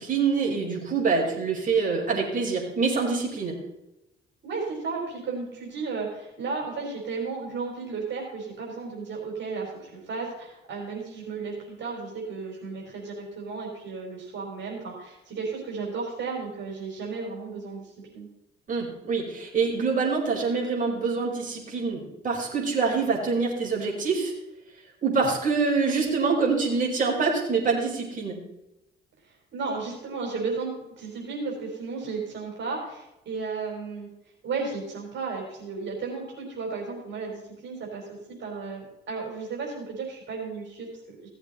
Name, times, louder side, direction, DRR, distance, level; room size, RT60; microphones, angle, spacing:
voice 1, 0.0-3.5 18.7-24.3 25.0-28.4, right 4 dB, 40° right, -2 dB, 5.1 m, -25 dB
voice 2, 4.4-18.3 29.2-34.1 34.4-41.3, right 4 dB, 65° right, -2 dB, 4.4 m, -34 dB
16.5 x 8.0 x 4.2 m, 0.89 s
cardioid pair, 90°, 20 cm